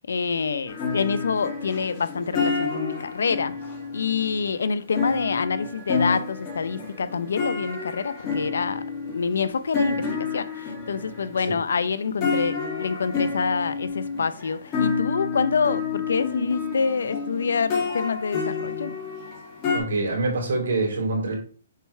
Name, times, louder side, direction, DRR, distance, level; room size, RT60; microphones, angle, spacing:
voice 1, 0.1-3.5 3.9-10.0 10.3-19.0, left 5 dB, 85° left, 0.6 m, -26 dB
sound 1, 0.7-19.8, left 5 dB, 20° left, 2.2 m, -29 dB
voice 2, 19.7-21.4, right 2 dB, 75° right, 3.3 m, -25 dB
6.7 x 4.6 x 3.2 m
hypercardioid pair, 165°, 0 cm